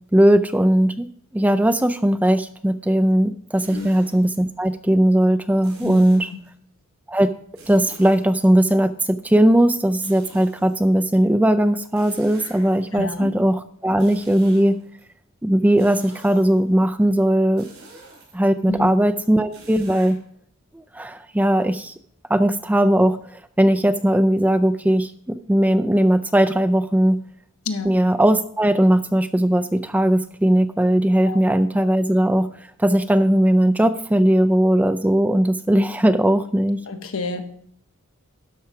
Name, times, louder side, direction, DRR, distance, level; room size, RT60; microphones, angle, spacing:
voice 1, 0.1-1.1 1.3-6.3 7.1-7.3 7.7-14.8 15.4-17.7 18.3-20.2 20.7-21.9 22.3-27.2 27.8-32.5 32.8-36.8, right 1 dB, 5° right, 11 dB, 0.4 m, -18 dB
sound 1, 3.6-4.3 5.6-6.5 7.5-8.8 10.0-11.2 11.9-13.1 13.9-15.0 15.8-16.7 17.6-18.6 19.5-20.2, right 2 dB, 85° right, 4.7 m, -46 dB
voice 2, 12.9-13.3 18.7-18.9 27.6-27.9 31.3-31.4 36.9-37.4, left 3 dB, 80° left, 6 dB, 1.2 m, -29 dB
12.5 x 4.8 x 5.7 m, 0.64 s
head